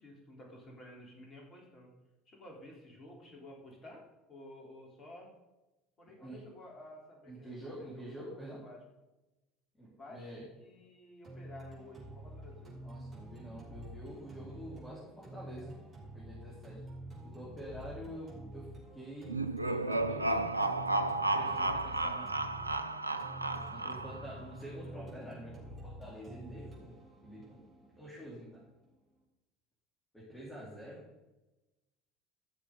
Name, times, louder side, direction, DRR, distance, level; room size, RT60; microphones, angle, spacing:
voice 1, 0.0-1.9 2.3-5.3 6.0-8.8 9.9-12.8, left 1 dB, 30° left, 0 dB, 3.5 m, -52 dB
voice 2, 7.3-8.6 9.8-10.5 12.8-15.8 16.1-16.8 17.2-20.7 21.2-22.3 23.5-27.0 27.2-28.6 30.1-31.1, equal, 10° left, -7 dB, 4.1 m, -47 dB
sound 1, 11.2-29.2, right 1 dB, 30° right, 4.2 m, -49 dB
sound 2, 19.3-24.4, right 2 dB, 90° right, 0.4 m, -33 dB
14.0 x 6.9 x 3.9 m, 1.0 s
figure-of-eight pair, 70°, 0 cm